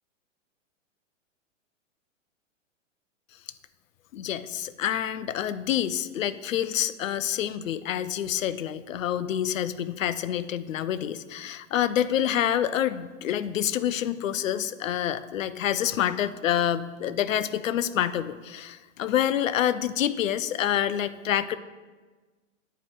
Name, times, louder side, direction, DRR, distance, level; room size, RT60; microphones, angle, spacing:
voice 1, 4.1-21.6, left 10 dB, 90° left, 15 dB, 0.5 m, -27 dB
9.4 x 4.5 x 2.9 m, 1.3 s
hypercardioid pair, 125°, 38 cm